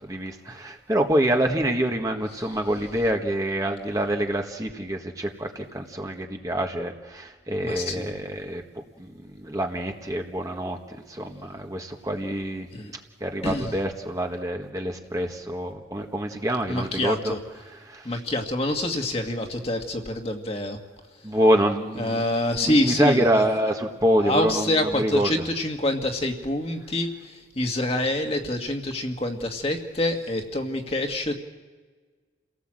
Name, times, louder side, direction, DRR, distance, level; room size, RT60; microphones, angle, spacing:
voice 1, 0.0-8.6 9.0-12.7 13.2-17.3 17.8-18.1 21.2-25.3, right 1 dB, 20° right, 2 dB, 1.5 m, -26 dB
voice 2, 7.6-8.1 12.7-12.9 13.4-13.7 16.7-17.4 18.0-20.8 22.0-23.4 24.2-31.3, left 1 dB, 30° left, 3 dB, 1.9 m, -26 dB
29.5 x 18.0 x 7.7 m, 1.4 s
head